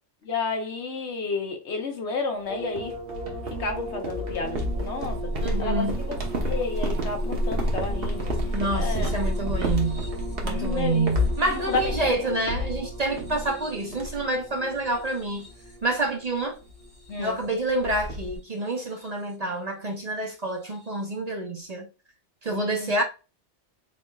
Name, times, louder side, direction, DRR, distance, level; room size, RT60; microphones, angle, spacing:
voice 1, 0.2-2.9 3.6-5.2 5.6-8.3 8.7-9.1 10.4-11.1 11.5-12.1 17.1-17.4 22.5-22.9, left 4 dB, 70° left, 1.2 m, -31 dB
sound 1, 2.5-17.7 18.6-19.3 20.7-20.9, right 2 dB, 25° left, 2.6 m, -39 dB
sound 2, 2.8-13.6 13.9-14.4 14.7-15.0 15.4-15.6 16.7-16.8 17.0-17.1 17.4-18.4, equal, 55° right, 1.2 m, -29 dB
voice 2, 5.4-6.0 8.5-10.1 10.4-15.5 15.8-16.6 17.2-21.9 22.4-23.0, right 2 dB, 40° right, 0.7 m, -28 dB
4.2 x 4.2 x 2.3 m
omnidirectional pair, 1.2 m